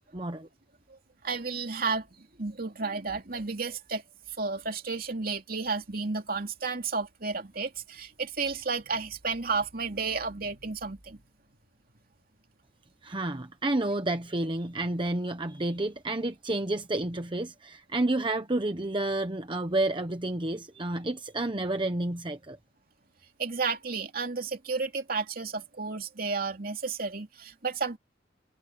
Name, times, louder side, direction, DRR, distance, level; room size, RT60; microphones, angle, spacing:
voice 1, 0.1-0.5 13.0-22.6, right 2 dB, 25° right, 1.0 m, -30 dB
voice 2, 1.2-4.0 4.4-11.2 23.4-28.0, right 4 dB, 50° right, 2.7 m, -32 dB
head